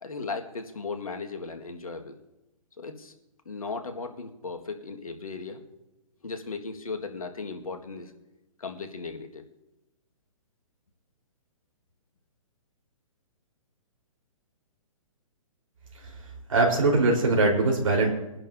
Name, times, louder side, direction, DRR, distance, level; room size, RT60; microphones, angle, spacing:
voice 1, 0.0-2.2 2.8-3.1 3.4-5.6 6.2-8.1 8.6-9.4, left 4 dB, 85° left, 5 dB, 1.7 m, -36 dB
voice 2, 15.9-18.1, right 3 dB, 70° right, -1 dB, 3.9 m, -23 dB
22.5 x 11.0 x 2.7 m, 0.96 s
hypercardioid pair, 130°, 18 cm